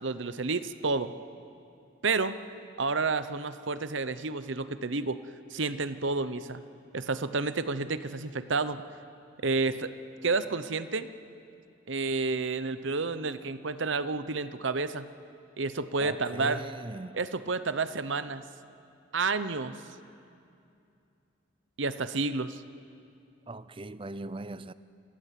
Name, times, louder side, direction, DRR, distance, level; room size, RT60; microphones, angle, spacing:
voice 1, 0.0-1.1 2.0-2.4 2.8-5.2 5.5-6.6 6.9-8.8 9.4-9.9 10.2-11.1 11.9-15.1 15.6-16.6 17.1-18.4 19.1-19.8 21.8-22.6, right 3 dB, 65° right, 0.8 m, -30 dB
voice 2, 16.0-17.2 23.5-24.7, right 2 dB, 25° right, 0.5 m, -39 dB
27.5 x 18.5 x 8.3 m
head